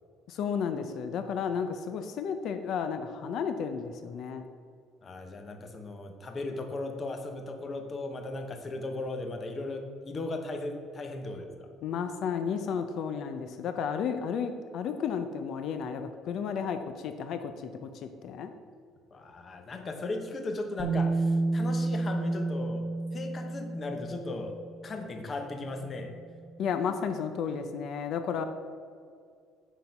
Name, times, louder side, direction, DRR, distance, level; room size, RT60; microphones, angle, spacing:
voice 1, 0.3-4.4 11.8-18.5 26.6-28.4, left 6 dB, 50° left, 8 dB, 0.5 m, -33 dB
voice 2, 5.0-11.7 19.1-22.9 23.1-26.1, left 2 dB, 25° left, 5 dB, 0.8 m, -37 dB
Bass guitar, 20.8-24.7 25.9-26.0, right 3 dB, 5° left, 1.7 m, -30 dB
8.2 x 5.9 x 5.3 m, 2.2 s
cardioid pair, 170°, 0 cm